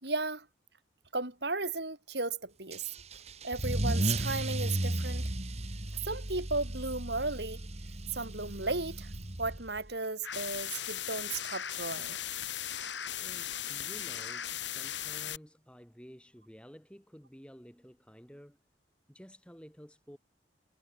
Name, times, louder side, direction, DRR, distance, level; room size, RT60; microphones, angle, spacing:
voice 1, 0.0-0.4 1.1-2.8 3.4-5.3 6.0-7.6 8.1-9.1 9.4-12.2, right 3 dB, 65° right, 6.7 m, -35 dB
Car / Engine starting / Accelerating revving vroom, 2.7-9.9, right 1 dB, 35° right, 2.0 m, -35 dB
sound 1, 10.2-15.4, left 10 dB, 80° left, 7.2 m, -37 dB
voice 2, 13.2-18.6 19.1-20.2, equal, 5° left, 6.5 m, -52 dB
head